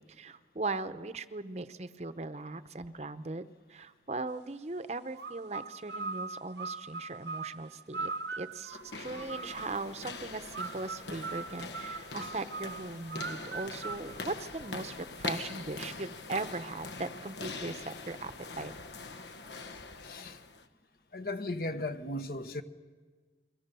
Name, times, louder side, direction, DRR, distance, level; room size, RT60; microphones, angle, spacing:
voice 1, 0.1-8.1 8.4-18.7, right 3 dB, 35° right, 0.7 m, -39 dB
sound 1, 5.1-9.9 10.5-15.0, right 4 dB, 80° right, 0.9 m, -41 dB
sound 2, 8.7-20.7, left 3 dB, 80° left, 1.1 m, -43 dB
voice 2, 20.0-20.4 21.1-22.6, left 2 dB, 55° left, 1.2 m, -36 dB
30.0 x 22.5 x 6.8 m
head